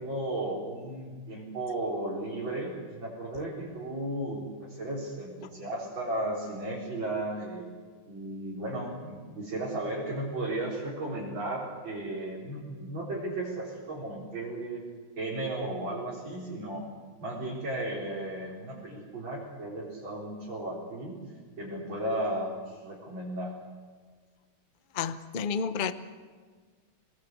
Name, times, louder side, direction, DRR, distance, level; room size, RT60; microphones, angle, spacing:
voice 1, 0.0-7.8 8.1-14.8 15.2-16.9 17.2-21.2 21.6-23.5, right 1 dB, 60° right, -7 dB, 5.0 m, -35 dB
voice 2, 24.9-25.9, left 6 dB, 70° left, 11 dB, 0.4 m, -30 dB
25.0 x 19.5 x 7.9 m, 1.5 s
omnidirectional pair, 2.4 m